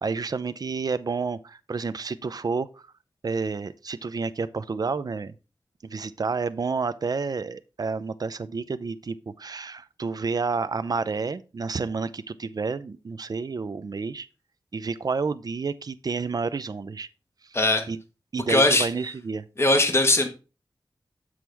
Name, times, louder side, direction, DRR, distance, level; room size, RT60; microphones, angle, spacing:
voice 1, 0.0-2.9 3.2-5.3 5.9-14.3 14.7-17.1 17.5-17.6 17.9-18.0 18.3-19.4, right 4 dB, 50° right, 0.5 m, -30 dB
voice 2, 17.5-17.8 18.5-18.9 19.6-20.3, left 2 dB, 30° left, 1.3 m, -20 dB
7.3 x 6.2 x 3.4 m
wide cardioid pair, 85°, 8 cm